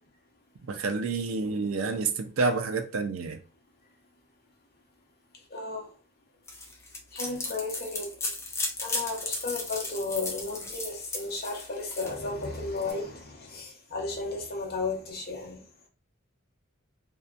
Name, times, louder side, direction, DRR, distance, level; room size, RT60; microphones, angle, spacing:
voice 1, 0.7-3.4, right 4 dB, 70° right, 0.5 m, -29 dB
voice 2, 5.5-5.9 7.1-8.2 8.8-15.6, left 3 dB, 45° left, 0.7 m, -34 dB
sound 1, 6.5-12.9, left 2 dB, 15° left, 0.4 m, -35 dB
2.8 x 2.1 x 2.4 m
head